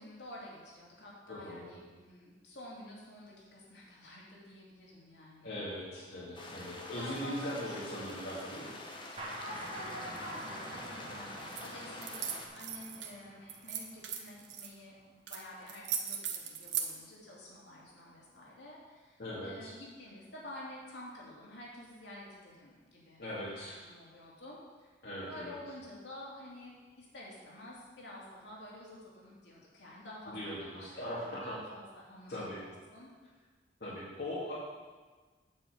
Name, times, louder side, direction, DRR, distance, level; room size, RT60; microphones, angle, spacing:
voice 1, 0.0-5.6 6.6-7.9 9.4-23.2 23.5-24.9 25.2-33.1, left 1 dB, 80° left, -5 dB, 2.7 m, -50 dB
voice 2, 1.3-1.7 5.4-8.8 19.2-19.8 23.2-23.8 25.0-25.5 30.3-31.6 32.3-32.6 33.8-34.5, equal, 65° left, -9 dB, 2.1 m, -40 dB
sound 1, 6.3-12.5, left 2 dB, 30° left, 1.0 m, -46 dB
sound 2, 9.2-14.6, right 1 dB, 35° right, 1.2 m, -47 dB
sound 3, 11.5-11.7 12.0-13.1 13.5-14.7 15.3-15.4 15.7-16.9, right 8 dB, 85° right, 1.0 m, -37 dB
8.5 x 4.9 x 7.3 m, 1.4 s
head